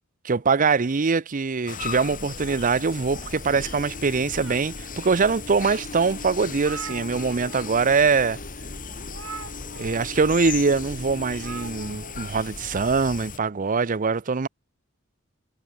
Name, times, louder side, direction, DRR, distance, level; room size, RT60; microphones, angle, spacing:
voice 1, 0.2-8.4 9.7-14.5, right 4 dB, 40° right, 0.6 m, -23 dB
sound 1, 1.7-13.4, left 4 dB, 40° left, 2.7 m, -36 dB
sound 2, 2.4-3.6 4.1-5.0 5.6-5.7 6.1-6.2 6.3-7.7 8.0-8.2 9.1-10.1 11.3-12.2, right 5 dB, 75° right, 5.9 m, -42 dB
head